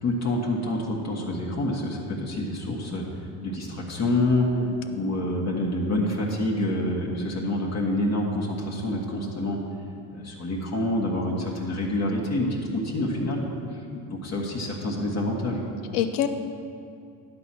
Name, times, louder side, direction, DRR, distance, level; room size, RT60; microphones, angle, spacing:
voice 1, 0.0-3.1 3.4-4.5 4.9-9.6 10.1-13.4 13.7-13.8 14.1-15.6, left 1 dB, 40° left, -2 dB, 1.5 m, -27 dB
voice 2, 4.6-5.0 5.9-6.1 15.9-16.3, left 10 dB, 90° left, 8 dB, 0.8 m, -28 dB
11.5 x 4.2 x 7.6 m, 2.5 s
supercardioid pair, 110°, 43 cm